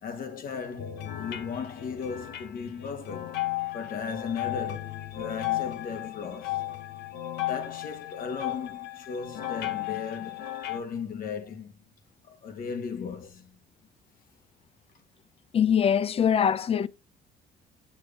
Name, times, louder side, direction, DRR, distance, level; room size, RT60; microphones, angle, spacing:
voice 1, 0.0-3.4 3.7-6.6 7.5-11.7 12.3-13.6, left 6 dB, 55° left, 1.6 m, -36 dB
sound 1, 0.8-10.8, left 14 dB, 90° left, 0.9 m, -35 dB
voice 2, 15.5-16.9, left 8 dB, 35° left, 0.5 m, -23 dB
6.7 x 6.4 x 3.6 m
cardioid pair, 110°, 17 cm